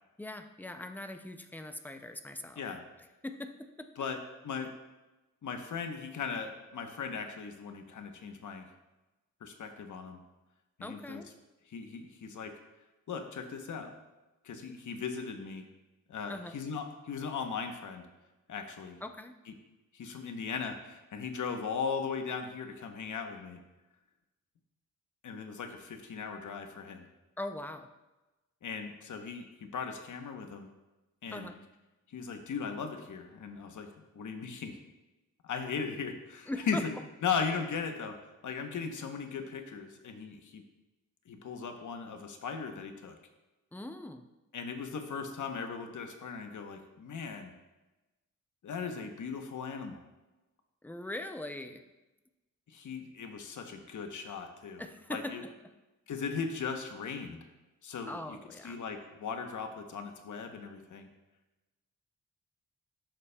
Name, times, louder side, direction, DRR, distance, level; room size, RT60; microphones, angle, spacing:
voice 1, 0.2-2.6 3.2-3.9 10.8-11.3 16.3-16.6 19.0-19.4 27.4-27.9 31.3-31.6 36.5-36.9 43.7-44.2 50.8-51.8 54.8-55.7 58.1-58.8, left 1 dB, 5° left, 6 dB, 0.3 m, -41 dB
voice 2, 5.4-8.7 9.4-10.2 10.8-11.2 11.7-12.5 13.1-13.9 14.4-15.6 16.1-18.0 18.5-19.0 19.9-23.6 25.2-27.1 28.6-30.7 31.2-31.5 32.1-33.9 34.1-34.7 35.4-36.8 37.2-38.2 38.4-40.6 41.3-43.2 44.5-47.5 48.6-50.0 52.7-54.8 55.1-55.4 56.1-57.5 57.8-58.4 58.6-61.1, left 5 dB, 75° left, 5 dB, 0.9 m, -38 dB
11.5 x 6.9 x 2.2 m, 1.1 s
wide cardioid pair, 175°, 31 cm